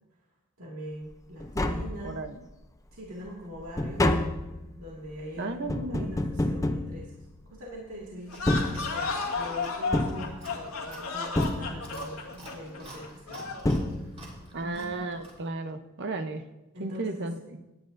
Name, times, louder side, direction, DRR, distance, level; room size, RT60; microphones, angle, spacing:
voice 1, 0.6-2.2 2.9-4.5 4.8-8.5 8.8-13.5 13.9-14.1 14.6-14.9 16.7-17.5, equal, 85° right, -4 dB, 2.2 m, -43 dB
Tap, 1.1-1.2 1.4-2.5 2.9-7.7 8.3-9.4 9.9-10.9 11.4-12.2 13.2-13.3 13.6-14.5 14.7-14.8, left 1 dB, 15° left, 0.6 m, -29 dB
voice 2, 2.0-2.4 5.4-6.1 14.5-16.4 16.8-17.4, right 2 dB, 55° right, 8 dB, 0.9 m, -34 dB
sound 1, 8.3-13.7, left 4 dB, 85° left, 1.8 m, -33 dB
Chewing mastication, 8.3-15.5, right 1 dB, 30° right, 3.1 m, -49 dB
18.5 x 9.7 x 2.6 m, 0.98 s
head